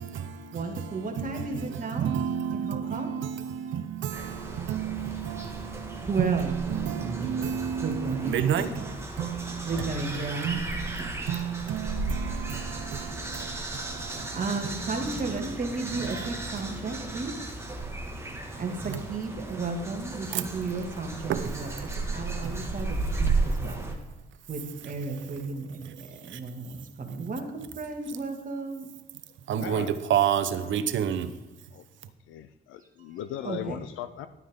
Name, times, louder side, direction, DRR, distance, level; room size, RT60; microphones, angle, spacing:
voice 1, 0.0-9.9 10.4-14.4 14.7-15.0 16.0-17.0 17.8-19.0 20.3-20.5 21.3-21.4 22.4-23.0 25.8-25.9 26.3-26.4 29.5-31.3, right 9 dB, 75° right, 0.9 m, -31 dB
voice 2, 0.5-2.1 2.5-3.1 6.0-7.5 7.8-8.7 9.7-10.6 11.0-11.1 12.8-13.4 14.3-17.4 18.6-23.9 24.5-28.9 32.8-33.2 33.4-33.8, right 3 dB, 40° right, 2.1 m, -34 dB
sound 1, 4.1-23.9, right 2 dB, 15° right, 1.8 m, -34 dB
voice 3, 29.6-29.9 31.7-31.8 32.3-34.3, left 11 dB, 90° left, 0.6 m, -37 dB
12.5 x 9.2 x 3.7 m
cardioid pair, 90°, 20 cm